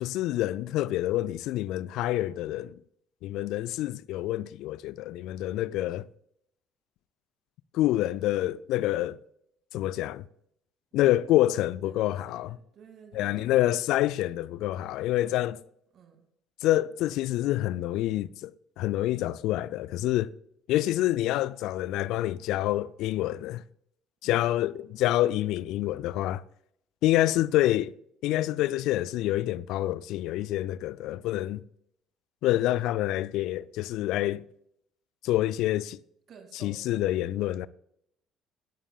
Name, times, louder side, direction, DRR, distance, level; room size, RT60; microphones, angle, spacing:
voice 1, 0.0-2.8 3.2-6.0 7.7-9.2 9.7-10.2 10.9-12.6 13.1-15.6 16.6-18.5 18.8-20.3 20.7-23.6 24.2-26.4 27.0-27.9 28.2-31.6 32.4-34.4 35.2-36.0 36.6-37.7, left 15 dB, 65° left, 0.4 m, -27 dB
voice 2, 11.8-13.5 15.9-16.3 24.2-24.5 36.3-37.6, right 6 dB, 50° right, 2.5 m, -52 dB
18.0 x 11.0 x 2.4 m
hypercardioid pair, 55°, 0 cm